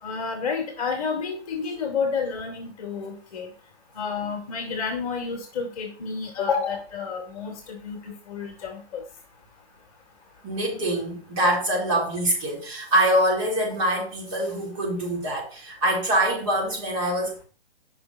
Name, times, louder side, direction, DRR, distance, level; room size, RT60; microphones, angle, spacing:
voice 1, 0.0-3.5 3.9-9.0, left 5 dB, 30° left, 2 dB, 2.0 m, -30 dB
voice 2, 10.4-17.5, right 1 dB, 30° right, -4 dB, 4.2 m, -24 dB
7.5 x 5.8 x 4.5 m, 0.39 s
hypercardioid pair, 150°, 33 cm